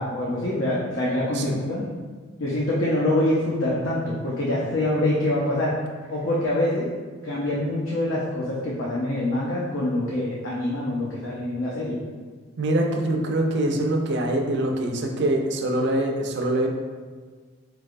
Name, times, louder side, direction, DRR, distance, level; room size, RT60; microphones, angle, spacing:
voice 1, 0.0-1.8 2.4-5.7 6.1-6.9 7.2-12.0, left 1 dB, 70° left, -5 dB, 0.6 m, -25 dB
voice 2, 12.6-16.7, right 1 dB, 55° right, 2 dB, 0.5 m, -24 dB
4.6 x 3.2 x 2.5 m, 1.5 s
head